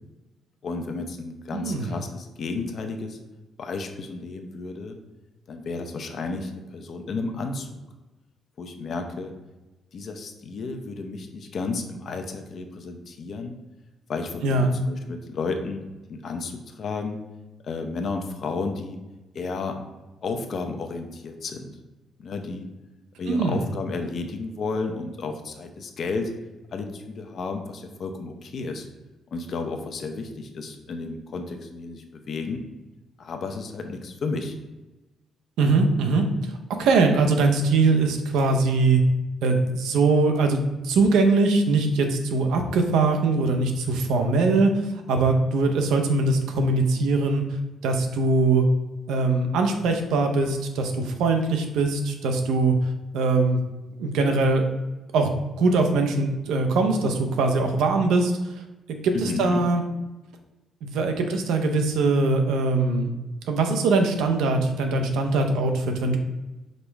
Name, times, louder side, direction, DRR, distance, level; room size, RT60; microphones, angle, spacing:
voice 1, 0.6-3.2 3.6-5.0 5.5-7.8 8.6-9.3 9.9-13.5 14.1-15.8 16.1-17.2 17.6-19.0 19.3-19.8 20.2-21.7 22.2-22.7 23.2-26.3 26.7-28.9 29.3-32.6 33.2-34.5 59.1-59.6, left 3 dB, 55° left, 5 dB, 0.6 m, -32 dB
voice 2, 1.5-1.9 14.4-14.7 23.3-23.6 35.6-36.3 36.8-39.0 39.4-44.7 45.1-47.4 47.8-48.6 49.1-52.7 53.1-53.6 54.0-54.6 55.1-55.3 55.6-58.3 59.0-59.8 60.8-63.1 63.5-66.2, right 3 dB, 90° right, 4 dB, 0.6 m, -22 dB
5.2 x 2.0 x 4.5 m, 1.1 s
cardioid pair, 90°, 0 cm